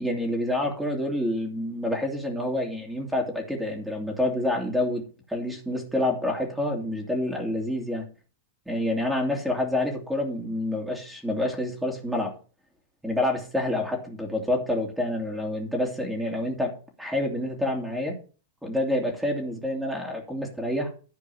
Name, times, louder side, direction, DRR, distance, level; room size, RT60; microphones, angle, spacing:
voice 1, 0.0-5.0 5.3-8.0 8.7-12.3 13.0-18.2 18.6-20.9, left 1 dB, 5° right, 1 dB, 2.6 m, -28 dB
11.5 x 4.5 x 7.1 m, 0.37 s
hypercardioid pair, 115°, 0 cm